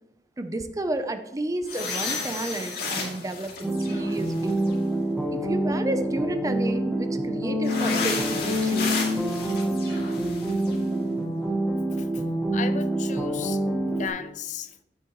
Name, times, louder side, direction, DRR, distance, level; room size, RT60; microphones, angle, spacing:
voice 1, 0.4-4.7 5.3-9.0 9.3-9.4, right 1 dB, 20° right, 0.6 m, -31 dB
sound 1, 1.6-4.7 7.6-10.7, left 4 dB, 60° left, 2.5 m, -32 dB
sound 2, 3.6-14.1, right 1 dB, ahead, 1.0 m, -26 dB
voice 2, 12.5-13.6 13.9-14.7, left 7 dB, 45° left, 0.5 m, -35 dB
9.8 x 8.4 x 3.1 m
head